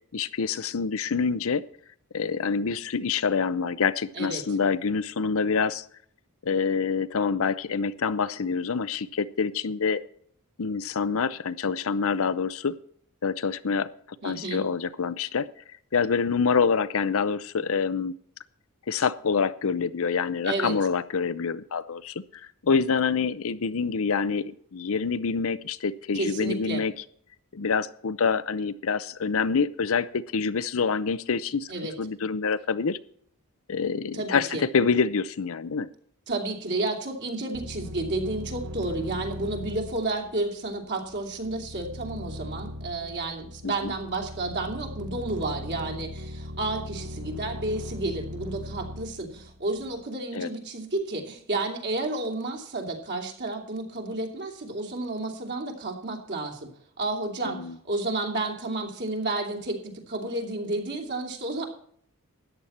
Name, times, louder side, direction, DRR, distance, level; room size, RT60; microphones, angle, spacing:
voice 1, 0.1-1.6 2.1-5.8 6.4-10.0 10.6-12.8 13.2-13.9 14.2-15.5 15.9-18.2 18.9-26.9 27.5-31.7 32.0-33.0 33.7-35.9 43.6-43.9 50.3-50.5 57.4-57.8, left 5 dB, 65° left, 15 dB, 0.6 m, -26 dB
voice 2, 14.2-14.6 20.4-20.7 26.1-26.8 31.7-31.9 34.1-34.6 36.3-56.7 57.0-61.6, right 2 dB, 50° right, 2 dB, 2.8 m, -31 dB
sound 1, 37.5-50.0, left 1 dB, 75° right, 2.2 m, -39 dB
14.0 x 10.0 x 4.3 m, 0.62 s
head